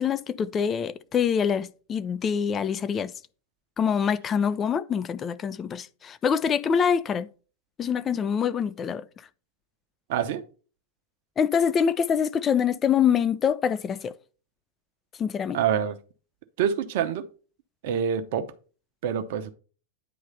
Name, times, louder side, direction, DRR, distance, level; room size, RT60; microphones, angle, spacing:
voice 1, 0.0-3.1 3.8-7.3 7.8-9.0 11.4-14.1 15.2-15.6, left 7 dB, 25° left, 0.4 m, -25 dB
voice 2, 10.1-10.4 15.5-16.0 16.6-17.2 17.8-18.5 19.0-19.5, right 8 dB, 50° right, 0.7 m, -26 dB
9.2 x 3.2 x 5.4 m
figure-of-eight pair, 90°, 0 cm